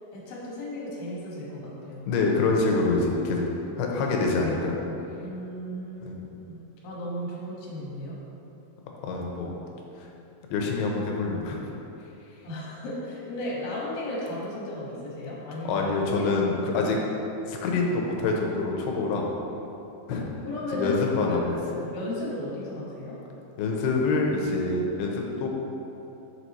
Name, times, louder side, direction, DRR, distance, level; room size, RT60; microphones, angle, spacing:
voice 1, 0.1-2.0 5.2-8.2 12.4-15.8 16.2-16.3 16.8-16.9 20.5-23.2, left 1 dB, 70° left, -5 dB, 3.0 m, -35 dB
voice 2, 2.1-3.5 3.8-4.8 6.0-6.2 9.0-9.5 10.5-11.6 15.7-17.0 17.5-19.2 20.1-20.2 20.7-21.6 23.6-25.5, left 3 dB, 85° left, 0 dB, 2.7 m, -26 dB
6.4 x 4.7 x 4.1 m, 3.0 s
omnidirectional pair, 4.5 m